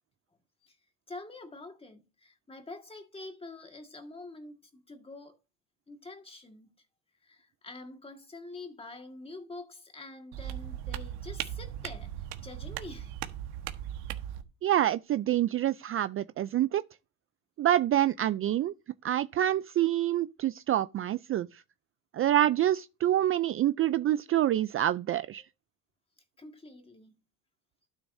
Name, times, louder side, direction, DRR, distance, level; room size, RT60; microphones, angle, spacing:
voice 1, 1.1-5.4 5.9-6.7 7.2-13.1 26.4-27.2, left 2 dB, 15° left, 1.8 m, -46 dB
sound 1, 10.3-14.4, right 11 dB, 85° right, 1.4 m, -38 dB
voice 2, 14.6-16.8 17.6-18.7 19.0-21.6 22.1-25.4, right 12 dB, 35° right, 0.4 m, -27 dB
12.0 x 7.2 x 2.7 m
cardioid pair, 115°, 37 cm